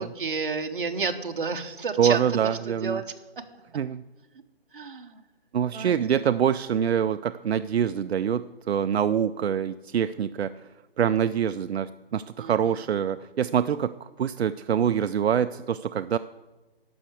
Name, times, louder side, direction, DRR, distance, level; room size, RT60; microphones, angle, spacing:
voice 1, 0.0-2.5 2.8-3.1 4.7-5.2 5.7-6.2 12.4-12.5, right 4 dB, 55° right, 6 dB, 1.2 m, -31 dB
voice 2, 2.0-3.0 3.7-4.0 5.5-10.5 11.0-16.2, right 8 dB, 85° right, 12 dB, 0.5 m, -25 dB
12.5 x 5.8 x 8.2 m, 1.1 s
hypercardioid pair, 180°, 31 cm